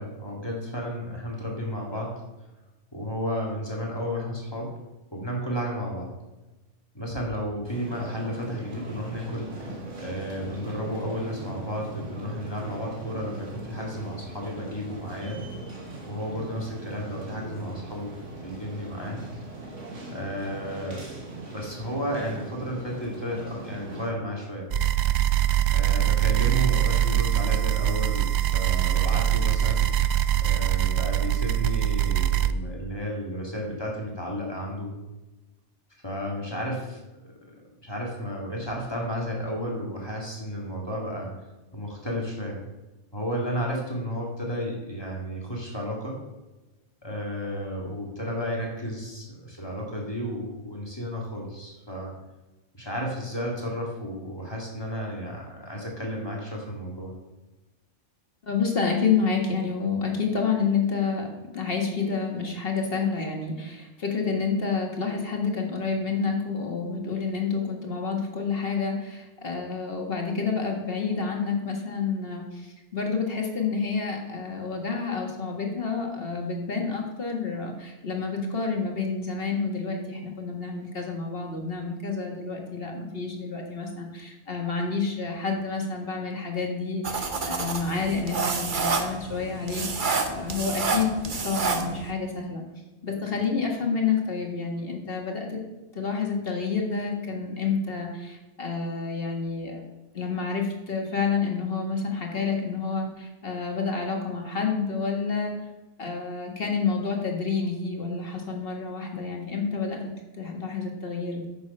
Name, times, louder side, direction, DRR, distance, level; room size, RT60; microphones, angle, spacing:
voice 1, 0.0-2.2 2.9-4.7 5.1-6.1 6.9-9.7 10.0-15.4 16.0-19.2 20.1-21.0 21.5-24.7 25.7-29.9 30.4-34.9 36.0-37.0 37.8-41.3 41.7-42.6 43.1-46.2 47.0-52.1 52.7-57.1, equal, 20° left, -2 dB, 2.2 m, -32 dB
sound 1, 7.7-24.1, right 2 dB, 85° right, 2.2 m, -40 dB
sound 2, 24.7-32.5, right 12 dB, 65° right, 0.4 m, -23 dB
voice 2, 58.4-61.3 61.5-90.0 90.3-92.6 93.0-95.6 95.9-99.9 100.1-105.5 106.0-110.0 110.4-111.5, left 5 dB, 50° left, 1 dB, 1.9 m, -29 dB
sound 3, 87.0-92.1, right 4 dB, 45° right, 1.1 m, -29 dB
9.5 x 6.9 x 5.4 m, 1.1 s
omnidirectional pair, 1.2 m